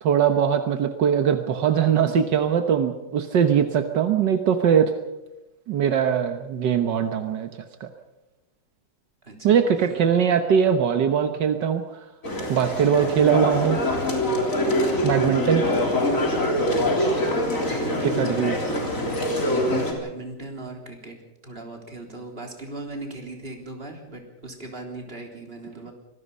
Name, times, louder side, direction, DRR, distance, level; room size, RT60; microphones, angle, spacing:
voice 1, 0.0-4.9 5.7-7.5 7.8-7.9 9.4-11.8 12.5-13.8 15.0-15.7 18.0-18.6, right 8 dB, 75° right, 7 dB, 1.8 m, -21 dB
voice 2, 9.2-10.0 15.8-16.2 16.8-17.1 17.7-19.2 19.9-21.2 21.4-25.9, right 2 dB, 30° right, 2 dB, 3.8 m, -38 dB
sound 1, 12.2-19.9, left 1 dB, 45° left, 4.1 m, -24 dB
25.5 x 19.5 x 5.5 m, 0.99 s
omnidirectional pair, 1.9 m